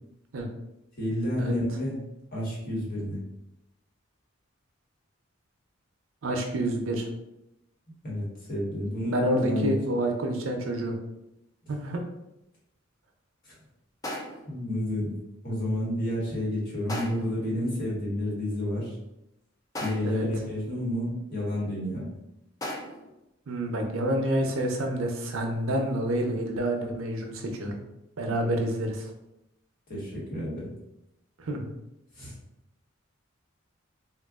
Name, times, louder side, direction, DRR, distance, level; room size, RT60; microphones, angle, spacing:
voice 1, 1.0-2.0 2.3-3.2 8.0-9.8 13.4-13.5 14.5-15.2 15.4-19.0 19.8-22.0 29.9-30.7 32.1-32.3, left 1 dB, 45° left, -6 dB, 1.2 m, -30 dB
voice 2, 6.2-7.1 9.1-11.0 11.7-12.0 20.0-20.3 23.5-27.8 28.2-29.1 31.4-31.7, right 1 dB, 90° right, 3 dB, 0.5 m, -28 dB
sound 1, 14.0-14.6 16.9-17.5 19.7-20.3 22.6-23.2, left 1 dB, 20° left, 0.3 m, -36 dB
3.6 x 2.3 x 2.3 m, 0.88 s
head